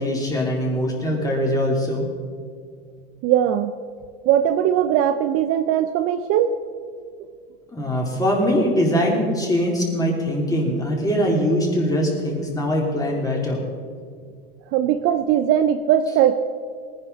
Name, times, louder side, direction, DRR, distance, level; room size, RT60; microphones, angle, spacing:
voice 1, 0.0-2.1 7.7-13.6, equal, 10° left, -2 dB, 3.6 m, -22 dB
voice 2, 3.2-3.7 4.3-6.5 14.7-16.5, right 10 dB, 45° right, 9 dB, 0.7 m, -19 dB
19.0 x 10.5 x 4.2 m, 2.1 s
hypercardioid pair, 105°, 32 cm